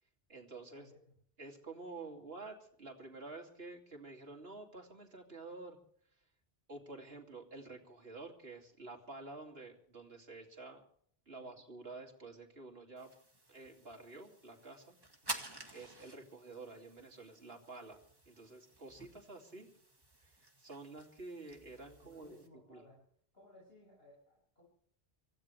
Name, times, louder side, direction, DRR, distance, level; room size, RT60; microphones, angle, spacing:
voice 1, 0.3-0.9 1.4-5.8 6.7-10.8 11.3-13.1 13.5-15.0 15.7-19.7 20.2-20.3 20.6-22.4 22.7-22.8, right 3 dB, 75° right, 1 dB, 3.0 m, -50 dB
sound 1, 13.0-22.5, right 1 dB, 25° right, 2.0 m, -50 dB
voice 2, 21.9-23.0 23.3-24.6, left 1 dB, 75° left, -3 dB, 7.0 m, -61 dB
25.5 x 16.0 x 3.4 m, 0.62 s
omnidirectional pair, 1.0 m